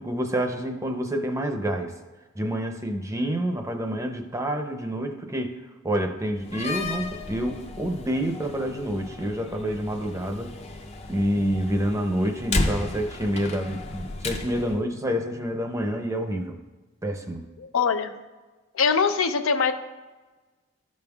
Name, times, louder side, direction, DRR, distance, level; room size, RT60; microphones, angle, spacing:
voice 1, 0.0-1.9 2.4-5.5 5.8-10.5 11.1-16.6 17.0-17.4, equal, 15° right, 4 dB, 0.6 m, -28 dB
Slam, 6.4-14.8, left 2 dB, 30° left, 0.5 m, -34 dB
voice 2, 17.6-18.1 18.7-19.7, left 5 dB, 85° left, 8 dB, 0.5 m, -22 dB
13.0 x 5.3 x 2.3 m, 1.2 s
head